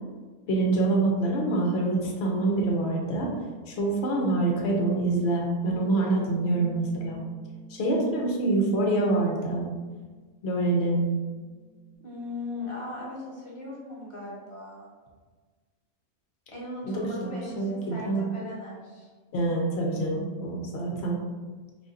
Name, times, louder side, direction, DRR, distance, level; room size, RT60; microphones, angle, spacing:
voice 1, 0.5-3.3 3.7-7.2 7.7-9.7 10.4-11.0 16.8-18.3 19.3-21.2, right 2 dB, 50° left, 0 dB, 1.0 m, -26 dB
Bass guitar, 5.7-12.0, right 5 dB, 80° right, 1.4 m, -47 dB
voice 2, 12.0-14.9 16.5-19.1, left 2 dB, 20° left, -5 dB, 1.1 m, -38 dB
4.1 x 2.8 x 3.7 m, 1.4 s
omnidirectional pair, 1.6 m